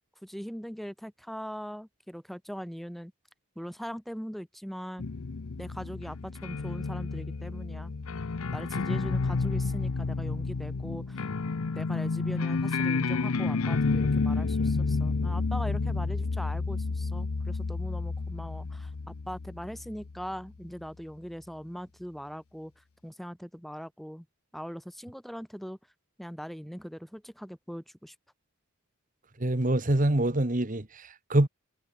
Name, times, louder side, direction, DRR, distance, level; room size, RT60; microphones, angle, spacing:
voice 1, 0.2-3.1 3.6-5.1 5.6-7.9 8.5-11.3 11.7-24.3 24.5-25.8 26.2-28.1, equal, ahead, 7.1 m, -41 dB
sound 1, 5.0-20.3, left 4 dB, 75° left, 0.7 m, -30 dB
voice 2, 29.4-31.5, right 1 dB, 35° right, 1.4 m, -25 dB
head